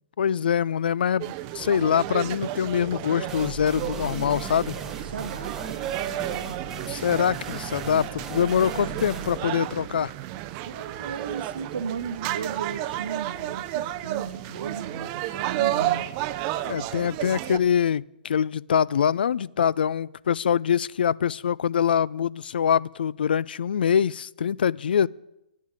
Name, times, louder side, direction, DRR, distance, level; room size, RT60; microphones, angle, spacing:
voice 1, 0.2-4.8 6.9-10.1 16.6-25.1, left 8 dB, 80° left, 0.3 m, -24 dB
sound 1, 1.2-17.6, right 14 dB, 25° right, 0.4 m, -32 dB
sound 2, 3.3-10.7, right 4 dB, 10° right, 0.9 m, -38 dB
voice 2, 5.0-6.7 8.8-9.3 10.6-16.1, right 6 dB, 85° right, 1.0 m, -36 dB
9.5 x 7.2 x 9.0 m
hypercardioid pair, 160°, 5 cm